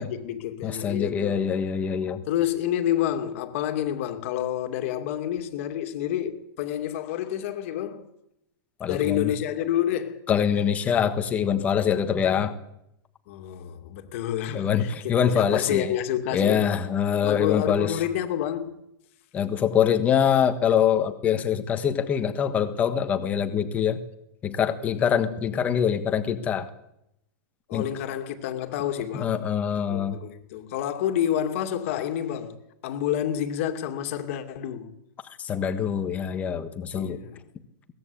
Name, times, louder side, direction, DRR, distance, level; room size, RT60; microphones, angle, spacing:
voice 1, 0.0-1.5 2.3-8.1 8.9-10.2 13.3-16.6 17.2-18.8 27.7-29.5 29.9-32.6 32.8-34.9 36.9-37.4, left 11 dB, 35° left, 2.4 m, -29 dB
voice 2, 0.6-2.2 8.8-9.3 10.3-12.5 14.5-15.9 16.3-18.0 19.3-24.0 24.4-26.7 27.7-27.8 29.1-30.2 35.4-37.2, left 8 dB, 15° left, 1.4 m, -24 dB
22.5 x 19.5 x 8.7 m
supercardioid pair, 180°, 11 cm